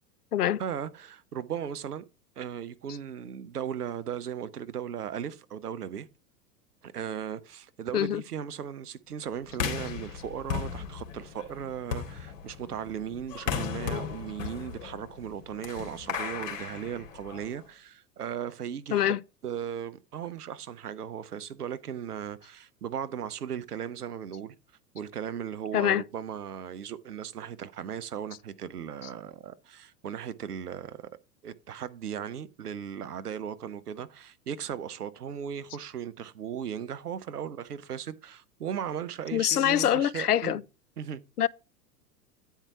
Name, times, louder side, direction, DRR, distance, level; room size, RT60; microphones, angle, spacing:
voice 1, 0.6-2.0 2.4-6.1 6.8-19.2 19.4-24.6 24.9-31.1 31.4-40.6 41.0-41.2, right 8 dB, 80° right, 0.8 m, -37 dB
sound 1, 9.5-17.6, left 7 dB, 55° left, 2.3 m, -36 dB
voice 2, 39.3-40.6 41.4-41.5, left 11 dB, 80° left, 0.5 m, -24 dB
9.0 x 4.6 x 4.7 m
figure-of-eight pair, 95°, 46 cm